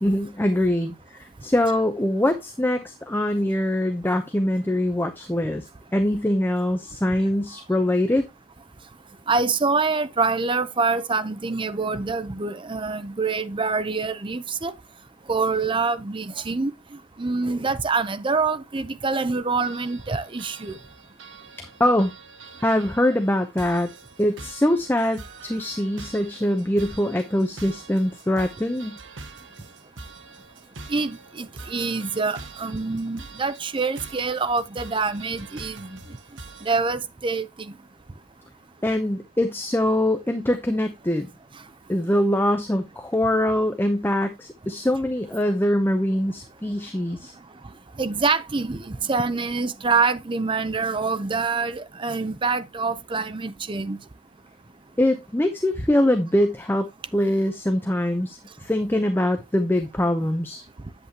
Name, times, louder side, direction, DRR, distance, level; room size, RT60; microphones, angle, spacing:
voice 1, 0.0-8.2 21.6-22.1 22.6-23.9 24.2-29.0 38.8-41.3 41.9-47.3 55.0-60.6, left 1 dB, 10° left, 0.7 m, -23 dB
voice 2, 9.3-14.7 15.3-16.7 17.2-20.7 30.9-35.9 36.6-37.7 48.0-54.0, right 4 dB, 25° right, 0.6 m, -25 dB
sound 1, 19.6-36.8, right 3 dB, 70° right, 1.2 m, -44 dB
8.2 x 8.1 x 2.9 m
head